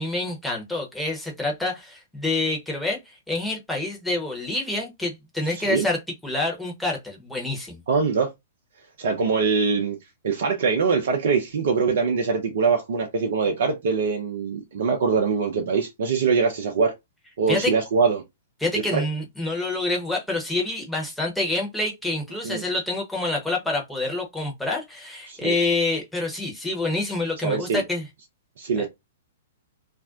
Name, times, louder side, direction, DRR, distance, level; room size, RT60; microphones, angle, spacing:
voice 1, 0.0-3.0 3.3-6.0 6.2-7.8 17.5-17.7 18.6-28.0 28.8-28.9, left 2 dB, 5° left, 0.9 m, -27 dB
voice 2, 5.5-5.9 7.9-8.3 9.0-10.0 10.2-16.9 17.4-18.2 18.9-19.0 22.4-22.6 25.3-25.5 27.4-27.8 28.6-28.9, right 5 dB, 60° right, 0.6 m, -23 dB
2.5 x 2.1 x 2.5 m
figure-of-eight pair, 115°, 0 cm